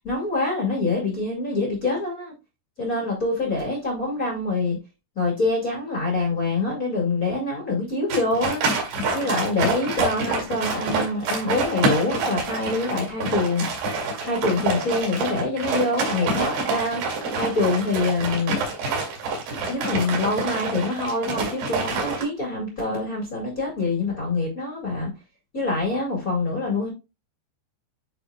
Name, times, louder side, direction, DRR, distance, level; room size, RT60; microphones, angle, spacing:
voice 1, 0.0-2.3 2.8-4.8 5.1-8.6 9.1-13.7 14.2-18.6 19.7-25.1 25.5-26.9, left 2 dB, 45° left, 1.1 m, -25 dB
sound 1, 8.1-22.2, right 3 dB, 65° right, 4.7 m, -27 dB
10.5 x 4.5 x 2.3 m
omnidirectional pair, 5.4 m